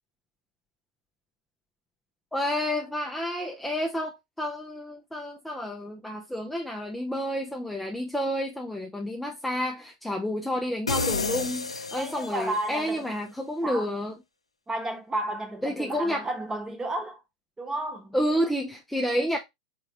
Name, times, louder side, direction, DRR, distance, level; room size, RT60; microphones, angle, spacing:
voice 1, 2.3-14.1 15.6-16.3 18.1-19.4, equal, 5° left, 0.6 m, -30 dB
sound 1, 10.9-12.7, left 4 dB, 90° left, 0.5 m, -30 dB
voice 2, 12.0-13.0 13.6-13.9 14.7-17.2 17.6-18.2, right 1 dB, 15° right, 1.1 m, -32 dB
4.0 x 3.5 x 2.9 m
figure-of-eight pair, 95°, 3 cm